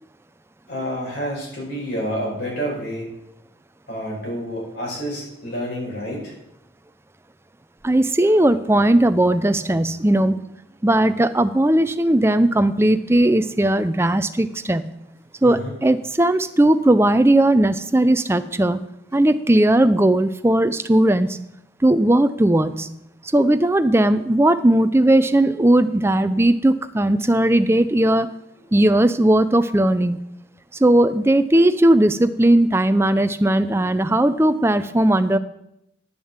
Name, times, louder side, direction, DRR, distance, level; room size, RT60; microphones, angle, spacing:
voice 1, 0.7-3.1 3.9-6.3 8.2-8.5 11.7-11.8 15.4-15.7 18.4-18.5, equal, 55° left, -2 dB, 5.1 m, -29 dB
voice 2, 7.8-10.4 10.8-14.9 15.4-18.8 19.1-21.4 21.8-22.9 23.3-28.3 28.7-30.2 30.8-35.4, right 1 dB, 15° right, 12 dB, 0.5 m, -17 dB
10.5 x 7.0 x 7.3 m, 0.83 s
head